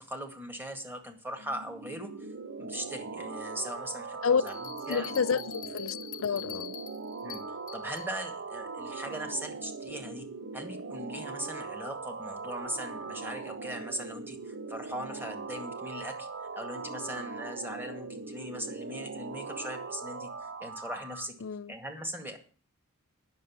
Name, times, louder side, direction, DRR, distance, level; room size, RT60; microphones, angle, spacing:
voice 1, 0.0-2.3 2.6-5.1 7.2-7.4 7.7-10.3 10.5-16.3 16.5-20.3 20.6-21.4 21.7-22.4, equal, 10° right, 2.0 m, -39 dB
sound 1, 1.4-21.3, right 4 dB, 55° right, 0.8 m, -40 dB
Bell, 4.5-8.1, left 10 dB, 40° left, 1.2 m, -44 dB
voice 2, 4.9-5.4 5.7-6.7 21.4-21.7, left 6 dB, 70° left, 0.5 m, -29 dB
10.0 x 6.8 x 8.6 m
head